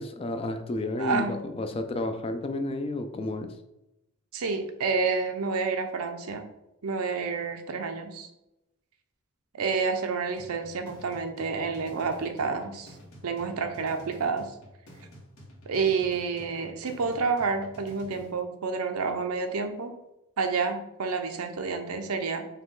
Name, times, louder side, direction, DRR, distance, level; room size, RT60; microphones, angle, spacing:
voice 1, 0.0-3.5, left 2 dB, 25° left, 8 dB, 0.3 m, -31 dB
voice 2, 1.0-1.4 4.3-6.5 6.8-8.3 9.5-12.9 13.2-14.6 15.7-19.9 20.4-22.5, right 4 dB, 85° right, 6 dB, 0.6 m, -29 dB
sound 1, 10.4-18.4, equal, 80° left, 1.3 m, -49 dB
5.4 x 2.3 x 3.7 m, 0.91 s
head